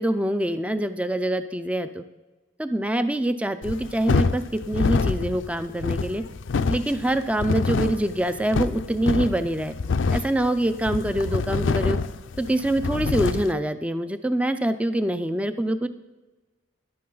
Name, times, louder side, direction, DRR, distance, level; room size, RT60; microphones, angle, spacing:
voice 1, 0.0-2.0 2.6-6.2 6.7-9.7 10.1-12.0 12.4-15.9, right 1 dB, 5° right, 10 dB, 0.4 m, -25 dB
sound 1, 3.6-13.5, left 4 dB, 65° left, 0.5 m, -26 dB
14.0 x 11.0 x 3.9 m, 1.2 s
head